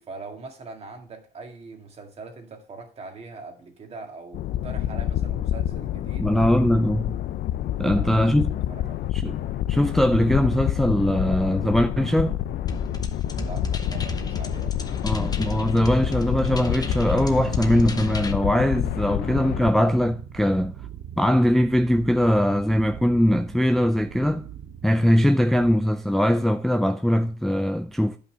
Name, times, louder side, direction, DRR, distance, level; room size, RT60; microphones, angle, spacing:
voice 1, 0.0-6.3 7.8-9.1 13.4-15.1, right 3 dB, 40° right, 2.0 m, -42 dB
sound 1, 4.3-19.7, left 12 dB, 65° left, 0.6 m, -28 dB
voice 2, 6.2-7.2 7.8-8.5 9.1-9.4 9.7-12.4 15.0-20.7 21.2-24.5 24.8-28.2, equal, ahead, 0.4 m, -21 dB
sound 2, 12.7-18.3, left 4 dB, 20° left, 0.9 m, -34 dB
sound 3, 13.3-25.8, right 10 dB, 65° right, 1.0 m, -41 dB
10.0 x 5.6 x 4.4 m
cardioid pair, 110°, 17 cm